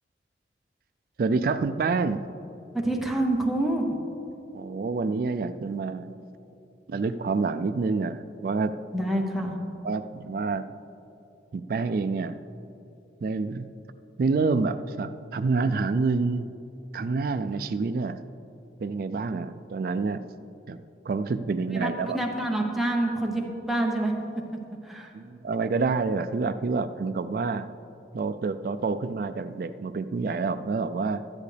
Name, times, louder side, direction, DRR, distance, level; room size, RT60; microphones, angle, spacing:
voice 1, 1.2-2.2 4.5-6.2 6.9-8.7 9.8-10.7 11.5-12.5 13.2-13.7 14.2-16.5 16.9-18.2 18.8-20.2 20.7-20.8 21.1-22.2 25.1-27.7 28.1-31.4, right 4 dB, 55° right, 10 dB, 0.3 m, -27 dB
voice 2, 2.7-4.0 8.9-9.6 21.7-24.1 24.8-25.1, right 1 dB, ahead, -1 dB, 0.9 m, -27 dB
12.5 x 10.5 x 3.3 m, 2.8 s
head